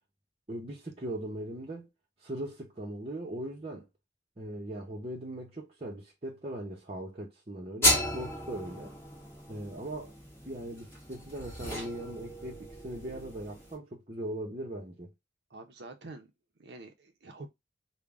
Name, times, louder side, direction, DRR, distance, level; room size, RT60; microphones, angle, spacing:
voice 1, 0.5-1.9 2.2-3.9 4.4-8.9 9.5-10.1 10.4-15.1, right 1 dB, 30° right, 0.8 m, -39 dB
sound 1, 7.8-13.7, left 1 dB, 15° left, 1.6 m, -33 dB
voice 2, 15.5-16.3 16.6-17.5, right 2 dB, 60° right, 0.7 m, -47 dB
3.8 x 2.2 x 3.3 m
head